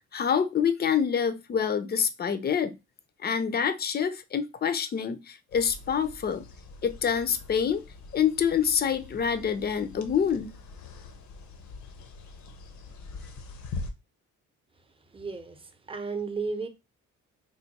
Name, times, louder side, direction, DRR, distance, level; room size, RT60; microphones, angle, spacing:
voice 1, 0.1-2.7 3.2-6.5 6.8-7.8 8.1-10.5, left 7 dB, 35° left, 0.5 m, -26 dB
sound 1, 5.5-13.9, left 3 dB, 70° left, 0.8 m, -43 dB
voice 2, 15.1-16.7, right 4 dB, 20° right, 0.7 m, -34 dB
3.4 x 2.2 x 4.0 m
cardioid pair, 90°, 30 cm